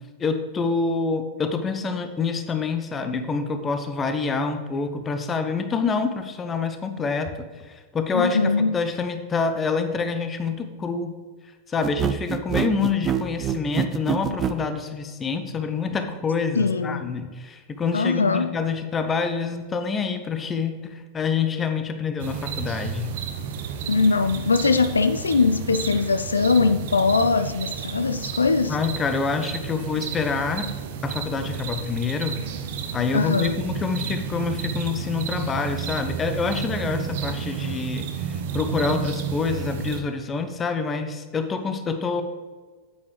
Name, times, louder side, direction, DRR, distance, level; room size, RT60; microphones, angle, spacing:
voice 1, 0.2-7.3 7.6-11.1 11.7-23.1 28.7-30.7 31.0-32.4 32.9-42.2, left 5 dB, 20° left, 8 dB, 0.9 m, -27 dB
voice 2, 8.1-8.7 16.6-17.0 17.9-18.6 23.9-28.8 33.1-33.5, left 4 dB, 75° left, 11 dB, 0.3 m, -21 dB
sound 1, 11.8-14.6, right 8 dB, 25° right, 0.5 m, -25 dB
sound 2, 22.2-40.0, right 7 dB, 55° right, 0.8 m, -32 dB
8.9 x 8.4 x 3.3 m, 1.4 s
figure-of-eight pair, 90°, 0 cm